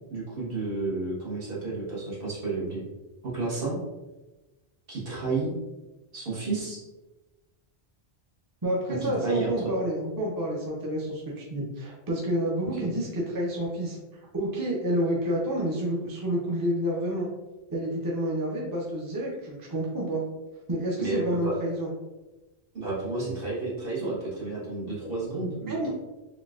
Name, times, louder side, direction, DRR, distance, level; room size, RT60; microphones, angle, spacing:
voice 1, 0.1-2.8 3.2-3.7 4.9-5.5 6.1-6.8 9.0-9.7 12.8-12.9 21.0-21.5 22.7-25.9, right 3 dB, 60° right, -7 dB, 1.4 m, -31 dB
voice 2, 8.6-14.0 14.3-17.3 17.7-20.2 20.7-21.9 25.7-25.9, right 1 dB, 25° right, -3 dB, 0.5 m, -29 dB
3.8 x 2.3 x 2.4 m, 1.1 s
omnidirectional pair, 1.1 m